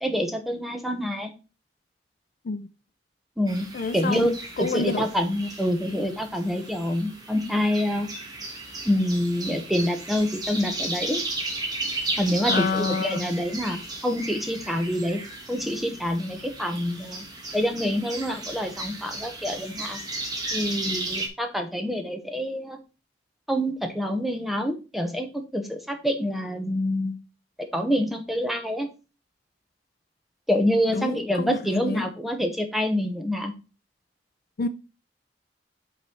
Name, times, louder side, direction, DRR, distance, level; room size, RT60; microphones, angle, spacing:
voice 1, 0.0-1.3 3.4-3.7 3.9-4.3 4.6-8.1 8.8-11.2 12.2-15.2 15.5-17.2 17.5-20.0 20.5-22.8 23.5-25.3 25.5-27.2 27.7-28.9 30.5-33.5, equal, ahead, 1.0 m, -26 dB
sound 1, 3.5-21.3, right 2 dB, 20° right, 1.6 m, -35 dB
voice 2, 3.7-5.1 5.9-6.0 12.4-13.3 30.9-32.1 34.6-34.7, left 4 dB, 55° left, 0.5 m, -28 dB
5.6 x 4.1 x 6.0 m
head